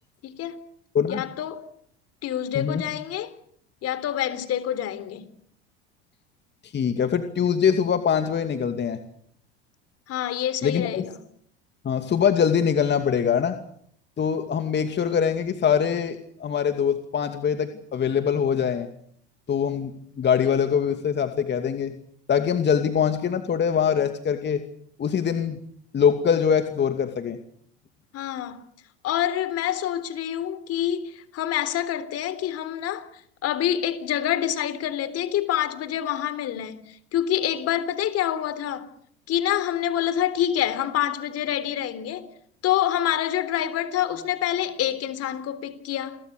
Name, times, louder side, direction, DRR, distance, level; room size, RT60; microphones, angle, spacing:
voice 1, 0.2-0.6 1.1-1.7 2.2-3.3 3.8-5.3 10.1-11.2 28.1-28.6 29.0-33.1 33.4-38.9 39.3-42.3 42.6-46.2, left 11 dB, 50° left, 3.6 m, -27 dB
voice 2, 6.6-9.0 10.6-11.1 11.8-13.6 14.2-18.9 19.5-22.0 22.3-24.6 25.0-25.6 25.9-27.4, left 7 dB, 35° left, 2.5 m, -23 dB
29.5 x 22.5 x 6.8 m
hypercardioid pair, 85°, 32 cm